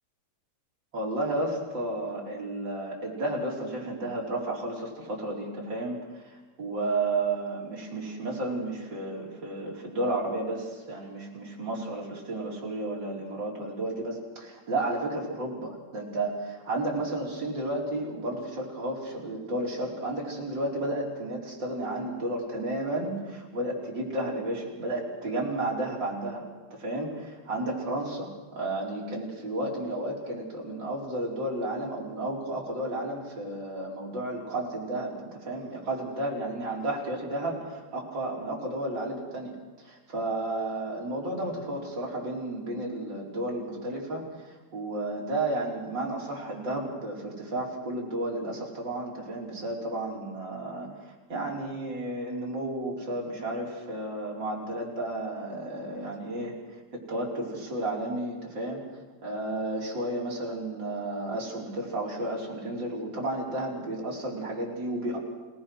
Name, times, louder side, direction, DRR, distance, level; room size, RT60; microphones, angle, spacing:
voice 1, 0.9-56.6 56.9-58.8 59.2-65.2, right 1 dB, 35° right, -3 dB, 5.3 m, -32 dB
29.0 x 18.5 x 6.4 m, 1.3 s
omnidirectional pair, 3.4 m